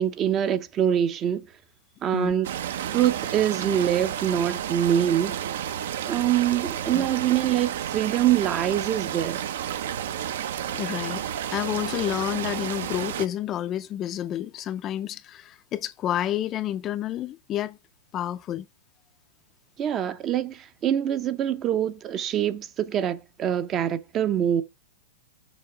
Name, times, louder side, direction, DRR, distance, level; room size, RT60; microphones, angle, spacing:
voice 1, 0.0-1.5 2.0-2.5 2.9-5.4 6.1-9.4 19.8-24.6, right 10 dB, 25° right, 0.5 m, -24 dB
sound 1, 2.4-13.3, right 10 dB, 65° right, 0.7 m, -31 dB
voice 2, 10.7-11.2 11.5-17.8 18.1-18.7, left 11 dB, 25° left, 0.4 m, -29 dB
6.9 x 5.1 x 4.9 m
supercardioid pair, 155°, 0 cm